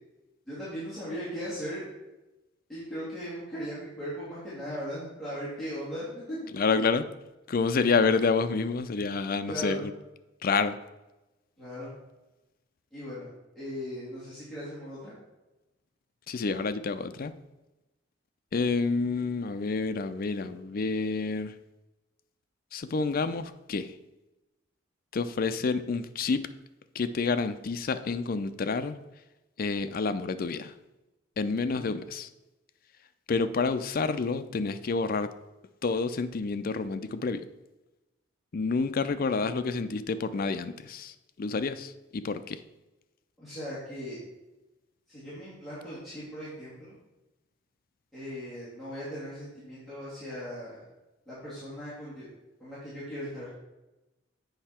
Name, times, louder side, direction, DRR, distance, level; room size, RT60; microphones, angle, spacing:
voice 1, 0.5-1.9 2.7-6.4 9.5-9.9 11.6-11.9 12.9-13.3 13.5-15.1 31.7-31.9 43.4-44.2 45.1-46.9 48.1-50.8 51.3-52.3 52.6-53.5, equal, ahead, -12 dB, 2.6 m, -38 dB
voice 2, 6.5-7.0 7.5-9.9 10.4-10.8 16.3-17.3 18.5-21.6 22.7-23.9 25.1-26.5 26.9-29.0 29.6-30.7 31.4-32.3 33.3-35.3 35.8-37.5 38.5-42.6, left 4 dB, 50° left, 11 dB, 0.4 m, -28 dB
7.9 x 5.5 x 4.3 m, 1.0 s
head